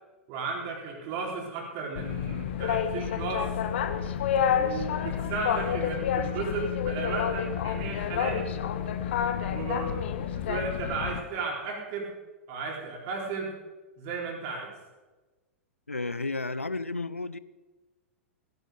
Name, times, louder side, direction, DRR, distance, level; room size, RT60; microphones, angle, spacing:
voice 1, 0.3-3.5 4.5-8.4 9.5-9.9 10.3-12.1 12.5-13.5 14.0-14.7, right 4 dB, 45° right, 4.2 m, -34 dB
Boat Water vehicle, 2.0-11.2, left 8 dB, 60° left, 1.1 m, -29 dB
voice 2, 15.9-17.4, left 3 dB, 90° left, 0.5 m, -32 dB
17.0 x 11.0 x 5.1 m
figure-of-eight pair, 100°, 7 cm